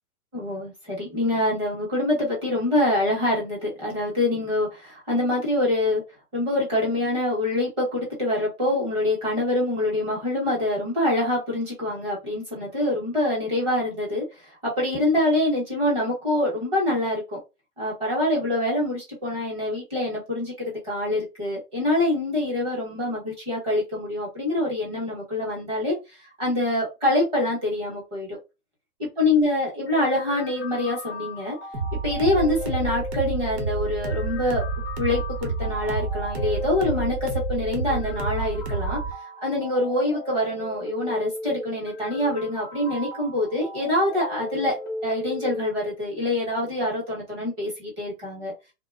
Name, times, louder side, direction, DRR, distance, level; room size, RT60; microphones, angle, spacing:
voice 1, 0.3-6.0 6.3-14.2 14.5-17.4 17.8-25.9 26.4-28.4 29.0-31.6 32.0-34.6 35.0-39.0 39.4-44.8 45.0-48.5, left 1 dB, 10° right, 0.8 m, -25 dB
sound 1, 29.9-45.8, left 2 dB, 15° left, 0.4 m, -36 dB
sound 2, 31.7-39.1, right 4 dB, 85° right, 1.1 m, -29 dB
2.9 x 2.2 x 2.3 m
hypercardioid pair, 155°, 48 cm